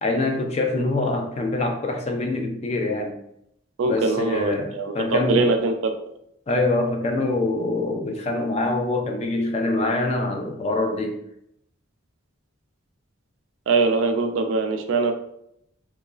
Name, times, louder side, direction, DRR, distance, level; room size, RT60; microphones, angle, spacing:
voice 1, 0.0-3.1 3.9-5.4 6.5-11.2, left 2 dB, 30° left, 3 dB, 0.3 m, -24 dB
voice 2, 3.8-5.9 13.7-15.1, right 3 dB, 65° right, 6 dB, 0.3 m, -22 dB
3.0 x 2.2 x 2.3 m, 0.76 s
head